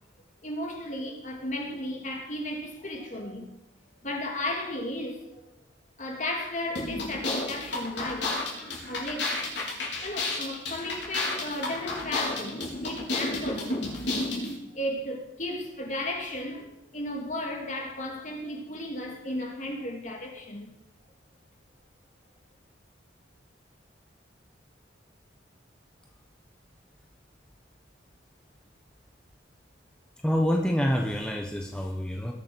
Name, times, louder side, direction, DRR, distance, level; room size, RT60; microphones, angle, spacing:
voice 1, 0.4-3.5 4.0-5.5 6.0-8.5 8.9-9.4 10.0-14.1 14.7-20.7, left 1 dB, 40° left, 2.4 m, -34 dB
sound 1, 6.7-14.5, left 2 dB, 70° left, 4.1 m, -31 dB
voice 2, 30.2-32.3, equal, 5° left, 1.0 m, -27 dB
20.0 x 7.1 x 6.2 m
head